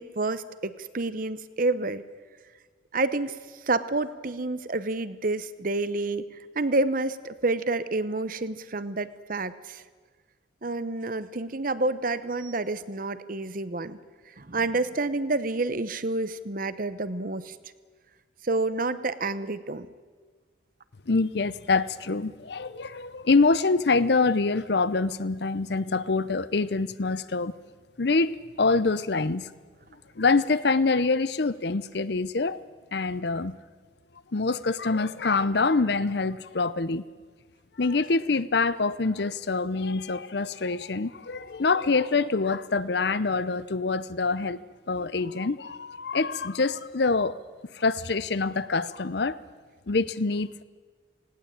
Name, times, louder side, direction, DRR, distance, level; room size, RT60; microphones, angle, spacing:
voice 1, 0.0-2.0 2.9-3.4 3.7-6.2 6.5-9.8 10.6-14.0 14.4-17.5 18.4-19.9, right 2 dB, 45° right, 14 dB, 0.9 m, -29 dB
voice 2, 21.1-27.5 28.0-29.5 30.2-32.6 32.9-33.6 34.3-37.0 37.8-44.6 44.9-47.4 47.7-49.4 49.9-50.6, left 3 dB, 55° left, 16 dB, 0.7 m, -25 dB
19.0 x 17.5 x 8.9 m, 1.5 s
head